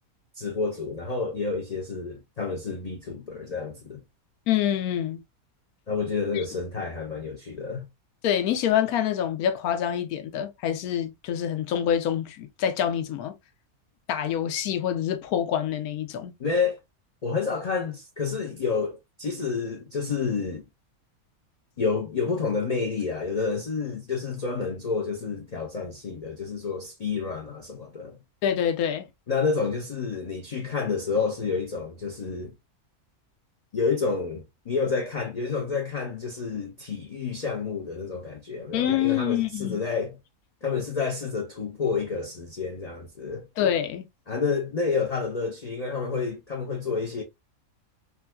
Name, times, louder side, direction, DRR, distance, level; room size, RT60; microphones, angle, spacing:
voice 1, 0.4-4.0 5.9-7.8 16.4-16.8 17.2-20.6 21.8-28.2 29.3-32.5 33.7-40.2 40.6-43.5 44.3-47.2, left 5 dB, 70° left, 0.3 m, -29 dB
voice 2, 4.5-5.2 8.2-13.3 14.1-16.3 28.4-29.1 38.7-39.8 43.6-44.0, left 10 dB, 85° left, 1.1 m, -26 dB
3.8 x 2.2 x 2.2 m
omnidirectional pair, 1.5 m